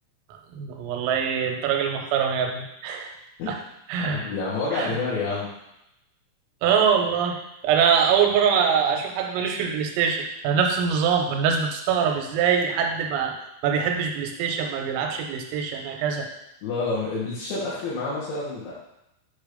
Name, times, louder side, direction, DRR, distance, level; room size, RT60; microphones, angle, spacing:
voice 1, 0.6-3.1 3.5-3.6 3.9-4.3 4.7-4.9 6.6-13.3 13.6-16.3, right 7 dB, 85° right, 3 dB, 3.5 m, -23 dB
voice 2, 4.0-5.5 16.6-18.7, left 3 dB, 70° left, -9 dB, 3.6 m, -28 dB
8.4 x 2.9 x 5.0 m, 0.85 s
omnidirectional pair, 6.0 m